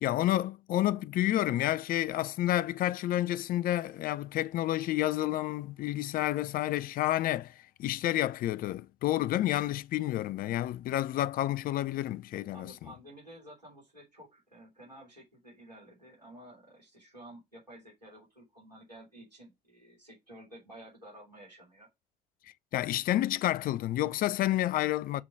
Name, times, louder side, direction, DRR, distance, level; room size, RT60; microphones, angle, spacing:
voice 1, 0.0-12.7 22.7-25.2, left 14 dB, 45° left, 0.5 m, -30 dB
voice 2, 12.5-21.9 25.1-25.2, right 1 dB, 85° right, 3.3 m, -52 dB
7.6 x 3.9 x 4.5 m
figure-of-eight pair, 50°, 21 cm